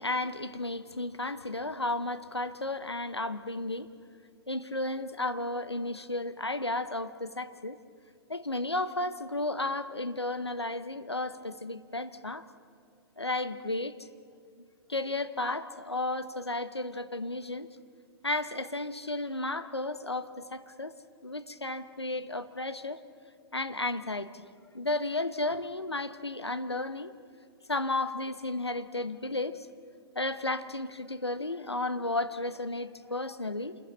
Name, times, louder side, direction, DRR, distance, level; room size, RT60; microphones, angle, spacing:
voice 1, 0.0-3.9 4.5-7.8 8.3-12.4 13.2-14.0 14.9-17.7 18.2-20.9 21.2-23.0 23.5-24.5 24.7-27.1 27.7-29.7 30.1-33.8, left 2 dB, 85° left, 11 dB, 1.0 m, -33 dB
27.5 x 21.5 x 7.4 m, 2.2 s
figure-of-eight pair, 110°, 13 cm